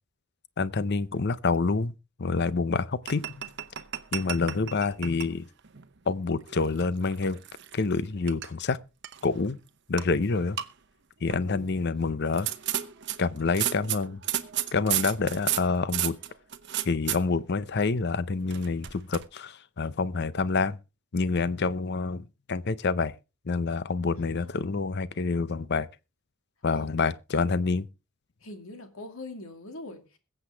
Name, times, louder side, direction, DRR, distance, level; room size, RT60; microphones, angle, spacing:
voice 1, 0.6-3.4 4.1-5.4 6.1-7.4 7.7-8.8 9.2-9.6 9.9-10.6 11.2-12.5 13.2-14.2 14.7-16.1 16.9-20.8 21.1-23.1 23.5-25.9 26.6-27.9, left 4 dB, 50° left, 0.6 m, -27 dB
sound 1, 3.1-5.3 5.6-5.9 6.5-8.0 8.3-8.5 9.0-9.5 10.0-10.1 10.4-10.7 11.3-11.6 12.3-17.2 18.5-19.2, right 12 dB, 55° right, 0.9 m, -32 dB
voice 2, 24.2-24.5 26.7-26.9 28.4-30.2, left 2 dB, 75° left, 2.3 m, -42 dB
21.5 x 8.0 x 3.4 m
head